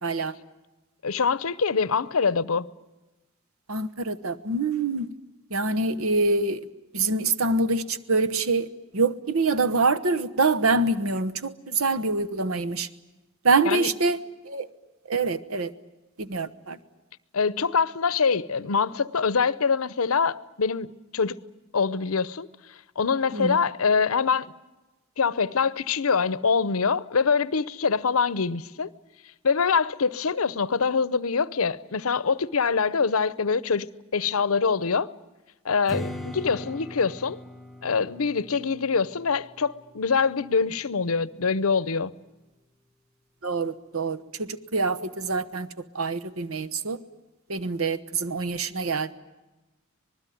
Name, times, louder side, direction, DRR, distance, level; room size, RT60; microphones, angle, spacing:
voice 1, 0.0-0.3 3.7-5.1 5.5-6.7 6.9-8.7 8.9-12.9 13.4-14.2 14.4-14.7 15.1-15.7 16.2-16.8 23.3-23.6 43.4-45.7 45.9-47.0 47.5-49.1, right 3 dB, 85° right, 1.2 m, -25 dB
voice 2, 1.0-2.7 13.7-13.9 17.3-21.3 21.7-24.5 25.2-28.9 29.4-33.9 34.1-35.1 35.6-37.4 37.8-42.1, left 5 dB, 90° left, 0.8 m, -24 dB
Strum, 35.9-41.1, left 1 dB, ahead, 0.9 m, -40 dB
26.0 x 20.0 x 9.3 m
head